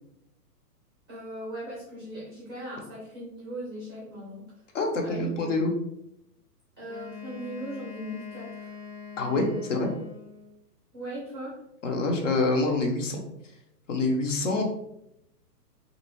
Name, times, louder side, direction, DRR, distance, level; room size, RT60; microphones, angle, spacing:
voice 1, 1.1-4.5 5.0-5.5 6.8-8.7 10.9-11.6, right 1 dB, 15° right, -6 dB, 0.5 m, -39 dB
voice 2, 4.7-5.7 9.2-9.9 11.8-13.2 13.9-14.6, left 2 dB, 50° left, 2 dB, 0.7 m, -26 dB
Wind instrument woodwind instrument, 6.9-10.6, left 6 dB, 90° left, 1.4 m, -43 dB
2.9 x 2.6 x 3.0 m, 0.81 s
hypercardioid pair, 155°, 48 cm